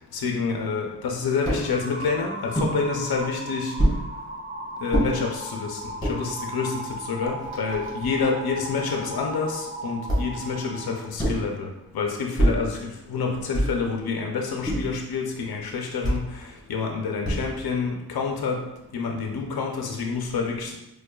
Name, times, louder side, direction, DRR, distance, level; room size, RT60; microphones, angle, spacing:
voice 1, 0.1-3.7 4.8-11.7 11.9-12.8 13.1-16.4 16.7-18.6 18.9-20.8, left 5 dB, 65° left, 1 dB, 0.6 m, -28 dB
sound 1, 1.5-1.7 2.5-2.8 3.8-4.0 4.9-5.1 5.8-6.2 6.9-7.0 7.2-8.3 10.1-10.4 11.2-11.5 12.4-12.7 13.5-13.9 14.7-15.0 16.0-16.3 17.2-17.7, right 1 dB, 10° left, 1.3 m, -25 dB
sound 2, 1.6-10.9, right 1 dB, 25° right, 0.6 m, -36 dB
4.5 x 2.3 x 2.3 m, 0.88 s
cardioid pair, 50°, 40 cm